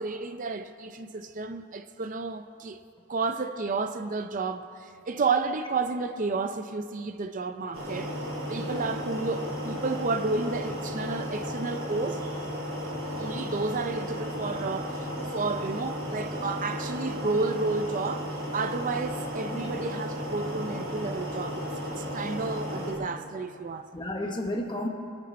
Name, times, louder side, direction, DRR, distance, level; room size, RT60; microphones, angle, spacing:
voice 1, 0.0-2.8 3.1-8.1 8.5-12.5 13.2-21.6 22.0-24.1, right 3 dB, 40° right, 0.5 m, -31 dB
sound 1, 7.7-22.9, equal, 85° right, 3.6 m, -34 dB
voice 2, 8.6-8.9 19.5-19.9 23.9-24.9, left 1 dB, 25° left, 1.3 m, -33 dB
23.0 x 9.3 x 4.3 m
head